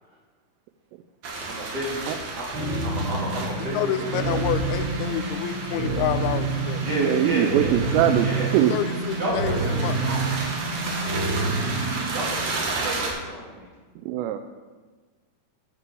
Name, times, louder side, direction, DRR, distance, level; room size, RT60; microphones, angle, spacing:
sound 1, 1.2-13.1, right 3 dB, 55° right, 2.2 m, -33 dB
voice 1, 1.5-2.4 2.8-4.2 6.8-7.7 8.2-8.5 9.2-9.7 10.0-10.4 12.1-13.7, equal, 30° right, -5 dB, 2.6 m, -31 dB
sound 2, 2.5-12.5, right 3 dB, 70° right, 4.8 m, -28 dB
voice 2, 3.7-6.8 8.7-10.0, left 11 dB, 80° left, 9 dB, 2.4 m, -28 dB
voice 3, 6.9-8.7 14.1-14.4, right 11 dB, 90° right, 8 dB, 2.8 m, -22 dB
10.0 x 6.8 x 6.8 m, 1.4 s
omnidirectional pair, 4.9 m